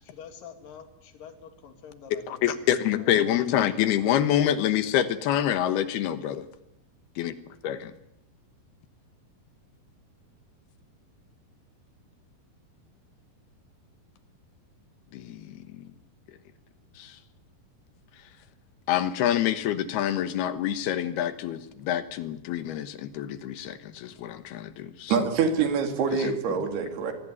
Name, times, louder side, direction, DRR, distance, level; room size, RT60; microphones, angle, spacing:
voice 1, 0.0-2.4 2.8-3.1 6.3-6.4, left 7 dB, 60° left, 7 dB, 3.9 m, -47 dB
voice 2, 2.1-6.5 7.2-7.3 7.6-7.9 15.1-15.6 17.0-17.2 18.9-25.1 26.2-26.4, left 11 dB, 75° left, 12 dB, 3.1 m, -26 dB
voice 3, 25.1-27.1, right 6 dB, 75° right, 6 dB, 4.4 m, -25 dB
23.0 x 18.5 x 9.7 m, 0.80 s
omnidirectional pair, 4.7 m